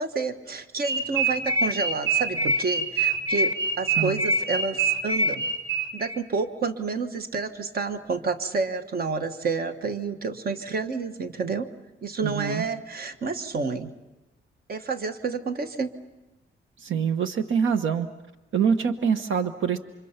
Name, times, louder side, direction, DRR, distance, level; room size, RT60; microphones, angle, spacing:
voice 1, 0.0-5.5 5.9-11.7 12.0-13.9 14.7-15.9, right 4 dB, 45° right, 8 dB, 1.3 m, -29 dB
sound 1, 0.8-6.1, right 3 dB, 20° right, 1.8 m, -25 dB
voice 2, 12.2-12.6 16.8-18.1 18.5-19.8, right 7 dB, 70° right, 8 dB, 1.1 m, -25 dB
29.5 x 26.0 x 5.8 m, 1.0 s
wide cardioid pair, 170°, 21 cm